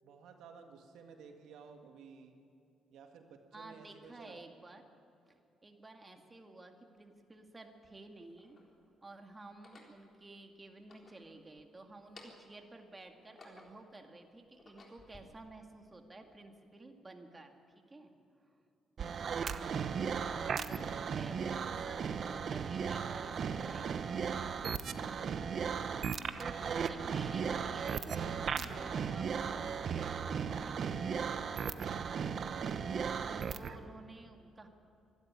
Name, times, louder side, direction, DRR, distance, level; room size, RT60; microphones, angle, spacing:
voice 1, 0.0-2.4 2.9-4.4 19.0-19.5 32.4-32.8, right 5 dB, 85° right, 4 dB, 1.8 m, -55 dB
voice 2, 3.5-4.8 5.2-8.6 9.0-18.1 18.4-18.6 20.2-24.5 26.4-30.0 30.2-31.1 33.5-34.7, right 2 dB, 20° right, 4 dB, 2.2 m, -52 dB
sound 1, 7.0-7.1 7.9-8.7 9.5-10.0 10.7-11.7 12.0-12.6 13.1-13.9 14.4-15.2, left 2 dB, 40° left, 3.9 m, -57 dB
sound 2, 19.0-33.8, right 6 dB, 55° right, 0.9 m, -36 dB
25.0 x 12.0 x 9.7 m, 2.5 s
cardioid pair, 90°, 0 cm